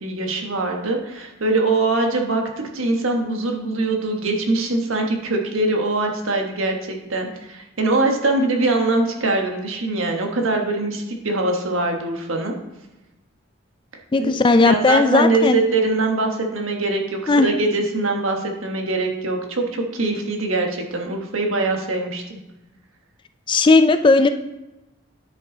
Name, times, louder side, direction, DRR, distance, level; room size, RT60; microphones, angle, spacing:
voice 1, 0.0-12.6 14.2-14.3 14.6-22.4, right 2 dB, 85° right, 2 dB, 1.4 m, -22 dB
voice 2, 14.1-15.6 17.3-17.5 23.5-24.3, left 3 dB, 25° left, 10 dB, 0.3 m, -16 dB
9.8 x 5.4 x 3.9 m, 0.98 s
head